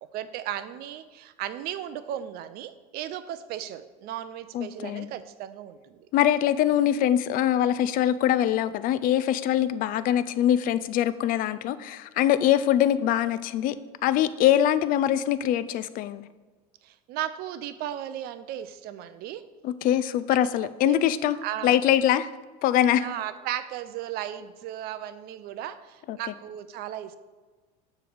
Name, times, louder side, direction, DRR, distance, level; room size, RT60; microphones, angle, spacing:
voice 1, 0.0-6.1 16.8-19.4 20.3-20.5 20.8-21.0 21.4-21.8 22.9-27.2, right 11 dB, 50° right, 12 dB, 0.5 m, -36 dB
voice 2, 4.5-5.1 6.1-13.8 14.0-16.3 19.6-21.4 21.6-22.3 22.6-23.1 26.1-26.2, left 11 dB, 45° left, 15 dB, 0.4 m, -23 dB
6.9 x 3.2 x 6.1 m, 1.3 s
supercardioid pair, 110°, 20 cm